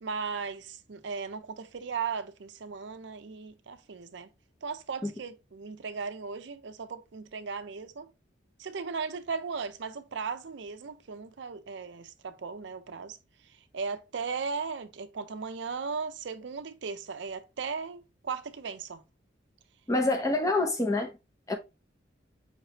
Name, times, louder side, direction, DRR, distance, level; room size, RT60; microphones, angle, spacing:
voice 1, 0.0-4.3 4.6-8.1 8.6-13.2 13.4-19.0, right 5 dB, 70° right, 0.5 m, -37 dB
voice 2, 19.9-21.1 21.5-21.6, left 2 dB, 15° left, 0.7 m, -26 dB
5.6 x 3.2 x 2.9 m
head